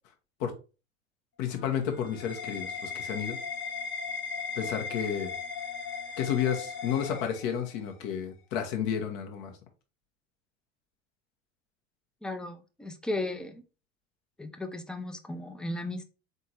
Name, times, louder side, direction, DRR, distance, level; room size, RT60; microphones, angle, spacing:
voice 1, 1.4-3.4 4.5-5.3 6.2-9.5, left 8 dB, 60° left, 1.3 m, -31 dB
sound 1, 1.4-7.9, left 5 dB, 30° left, 0.9 m, -37 dB
voice 2, 12.2-13.6 14.4-16.0, left 2 dB, ahead, 0.5 m, -35 dB
4.1 x 3.6 x 2.9 m
hypercardioid pair, 85°, 38 cm